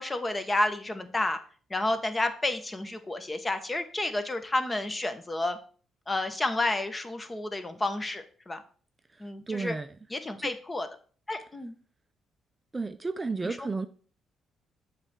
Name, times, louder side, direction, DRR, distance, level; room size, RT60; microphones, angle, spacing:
voice 1, 0.0-1.4 1.7-5.6 6.1-8.6 9.2-9.8 10.1-10.9 11.3-11.7, left 2 dB, 20° left, 0.9 m, -30 dB
voice 2, 9.1-9.9 10.4-10.5 12.7-13.9, right 3 dB, 25° right, 0.4 m, -33 dB
7.2 x 3.3 x 5.8 m
cardioid pair, 90°, 0 cm